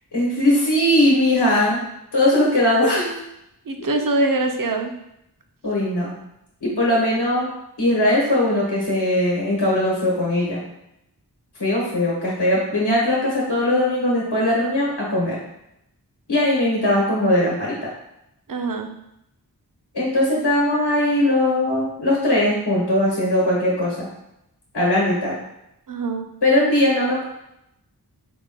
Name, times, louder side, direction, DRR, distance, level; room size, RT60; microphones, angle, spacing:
voice 1, 0.1-1.8 2.1-3.2 3.8-4.0 5.6-6.1 6.6-7.5 7.8-10.6 11.6-15.4 16.3-17.9 19.9-24.1 24.7-25.3 26.4-27.2, left 1 dB, 85° left, -5 dB, 1.1 m, -20 dB
voice 2, 3.7-4.9 18.5-18.9 20.3-20.5 25.9-26.3, right 2 dB, 55° right, 4 dB, 0.6 m, -23 dB
4.8 x 2.2 x 3.8 m, 0.82 s
wide cardioid pair, 45°, 39 cm